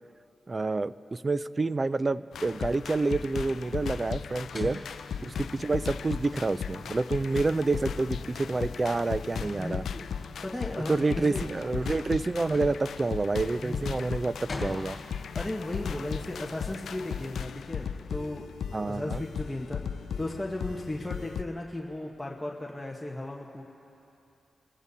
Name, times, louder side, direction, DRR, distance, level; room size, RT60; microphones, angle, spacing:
voice 1, 0.5-4.8 5.2-9.8 10.9-15.0 18.7-19.2, right 3 dB, 35° right, 16 dB, 0.4 m, -28 dB
sound 1, 2.3-21.4, left 7 dB, 85° left, 0.3 m, -36 dB
sound 2, 4.5-9.5 9.9-15.5, left 2 dB, 50° left, 2.6 m, -45 dB
voice 2, 9.4-10.0 10.4-11.5 13.6-14.0 15.4-18.5 18.7-23.6, left 1 dB, 15° left, -2 dB, 1.1 m, -36 dB
26.0 x 15.5 x 2.8 m, 2.8 s
cardioid pair, 75°, 0 cm